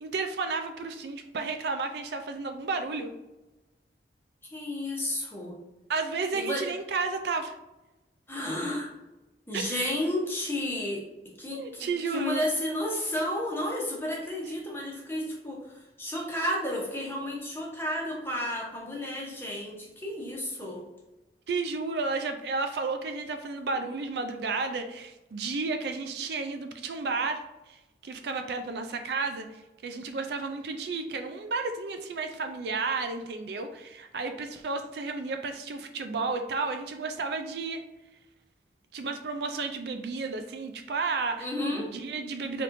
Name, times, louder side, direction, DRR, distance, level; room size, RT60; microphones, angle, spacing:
voice 1, 0.0-3.1 5.9-7.5 9.5-9.9 11.5-12.4 21.5-27.4 27.7-29.5 29.8-37.8 38.9-42.6, right 4 dB, 65° right, 6 dB, 0.4 m, -32 dB
voice 2, 4.5-5.5 6.3-6.7 8.3-8.9 9.5-11.0 11.4-20.8 41.4-41.9, left 1 dB, 15° left, -2 dB, 1.0 m, -32 dB
4.2 x 3.4 x 2.6 m, 1.0 s
head